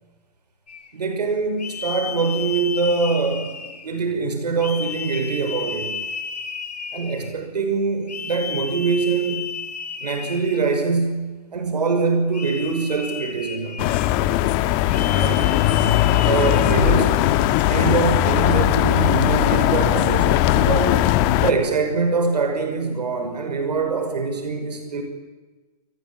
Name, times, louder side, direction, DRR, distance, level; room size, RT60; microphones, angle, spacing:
sound 1, 0.7-0.9 1.6-4.0 4.6-7.3 8.1-10.9 12.3-14.2 14.9-17.0, left 5 dB, 85° left, 6.9 m, -33 dB
voice 1, 0.9-6.0 6.9-9.6 10.0-13.9 15.1-15.5 16.2-17.3 17.7-21.0 21.4-25.0, right 4 dB, 85° right, 6 dB, 5.6 m, -23 dB
sound 2, 13.8-21.5, left 14 dB, 35° left, 1.6 m, -19 dB
28.5 x 19.5 x 8.9 m, 1.3 s
hypercardioid pair, 135°, 20 cm